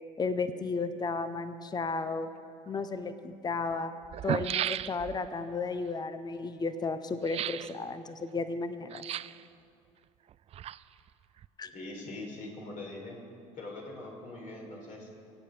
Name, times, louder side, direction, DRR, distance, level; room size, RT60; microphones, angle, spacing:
voice 1, 0.2-2.3 2.7-3.9 4.2-9.1 11.6-11.7, left 4 dB, 25° left, 11 dB, 1.0 m, -33 dB
sound 1, 2.7-2.8 3.7-3.8 4.0-5.3 7.2-7.7 8.9-9.5 10.3-11.1 11.4-11.5, right 11 dB, 35° right, 0.4 m, -34 dB
voice 2, 11.7-13.2 13.6-15.1, left 2 dB, 50° left, 0 dB, 4.4 m, -42 dB
24.5 x 8.4 x 5.2 m, 2.5 s
hypercardioid pair, 65°, 17 cm